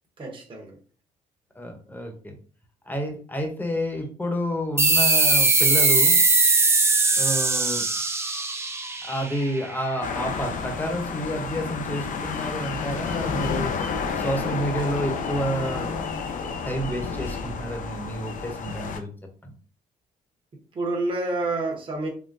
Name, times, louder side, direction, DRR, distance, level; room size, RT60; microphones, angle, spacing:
voice 1, 0.2-0.8 20.5-22.1, right 2 dB, 35° right, 0.9 m, -29 dB
voice 2, 1.6-2.4 2.9-6.2 7.2-7.8 9.0-13.7 14.1-15.9 16.4-19.1 19.4-19.5, equal, 10° left, 0.8 m, -29 dB
sound 1, 4.8-9.9, right 3 dB, 15° right, 0.4 m, -20 dB
sound 2, 10.0-19.0, left 5 dB, 60° left, 0.5 m, -30 dB
3.7 x 2.1 x 2.6 m
cardioid pair, 85°, 15 cm